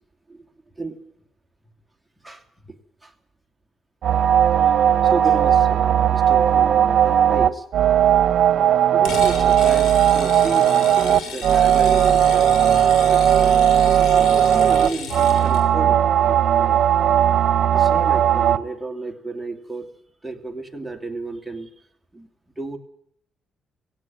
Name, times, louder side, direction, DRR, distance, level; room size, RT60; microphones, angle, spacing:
voice 1, 2.2-2.7 3.0-3.1 5.0-7.6 8.9-12.5 13.1-13.7 14.0-16.8 17.7-19.9 20.2-21.7 22.1-22.3 22.6-22.8, right 3 dB, 5° right, 2.8 m, -32 dB
sound 1, 4.0-18.6, right 10 dB, 65° right, 1.1 m, -17 dB
sound 2, 9.0-15.6, left 6 dB, 85° left, 5.7 m, -34 dB
18.5 x 17.0 x 9.2 m
cardioid pair, 90°, 0 cm